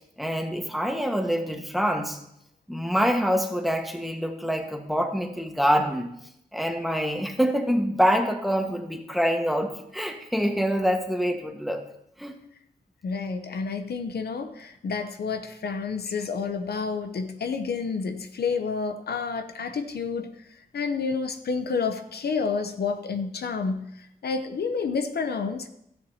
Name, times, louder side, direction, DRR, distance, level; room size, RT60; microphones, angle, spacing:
voice 1, 0.2-2.2 2.7-6.1 6.5-11.8 12.2-12.4, equal, ahead, 4 dB, 1.4 m, -25 dB
voice 2, 13.0-20.3 20.7-25.7, left 5 dB, 75° left, 8 dB, 0.7 m, -29 dB
13.0 x 10.0 x 2.8 m, 0.78 s
cardioid pair, 55°, 17 cm